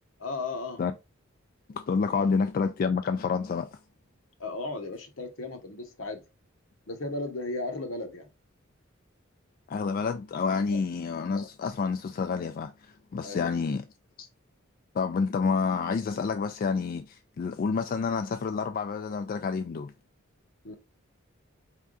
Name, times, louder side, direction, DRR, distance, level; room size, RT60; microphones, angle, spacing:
voice 1, 0.2-0.8 2.1-2.2 4.4-6.2 6.9-8.3 10.7-10.8 13.2-13.5 20.6-20.7, left 2 dB, 75° left, 1.0 m, -35 dB
voice 2, 1.7-3.7 9.7-13.8 14.2-14.3 14.9-19.9, left 5 dB, 45° left, 0.3 m, -29 dB
4.5 x 3.4 x 2.4 m
head